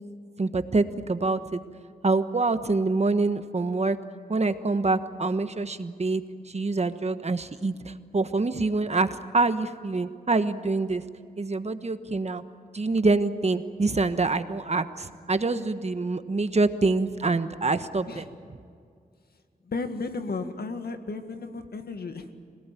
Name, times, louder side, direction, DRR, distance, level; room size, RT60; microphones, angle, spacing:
voice 1, 0.4-1.6 2.0-4.0 4.3-11.0 11.4-12.4 12.7-18.3, right 3 dB, 45° right, 10 dB, 1.3 m, -26 dB
voice 2, 19.6-22.3, left 3 dB, 90° left, 7 dB, 1.9 m, -34 dB
26.0 x 18.5 x 9.2 m, 2.2 s
wide cardioid pair, 75°, 16 cm